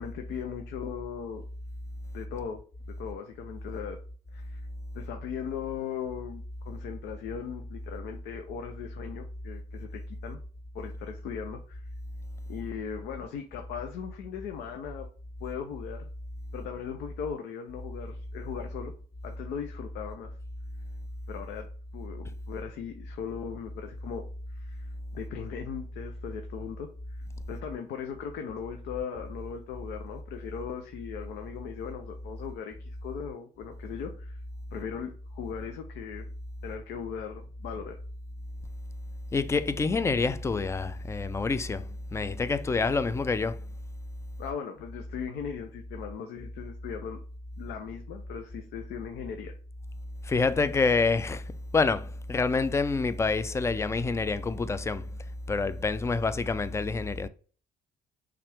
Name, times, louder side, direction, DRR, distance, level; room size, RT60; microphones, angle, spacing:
voice 1, 0.0-1.4 2.1-2.6 3.0-4.0 4.3-4.6 4.9-10.4 10.7-11.9 12.5-15.1 15.4-16.0 16.5-18.9 19.2-20.3 21.3-21.7 21.9-24.2 24.5-24.9 25.1-26.9 27.5-34.4 34.7-36.2 36.6-38.0 44.4-47.2 47.6-49.5, left 7 dB, 80° left, 0.7 m, -38 dB
voice 2, 39.3-43.6 50.2-51.4 51.7-55.1 55.5-57.3, left 4 dB, 15° left, 0.4 m, -27 dB
5.8 x 2.5 x 3.4 m
cardioid pair, 110°, 17 cm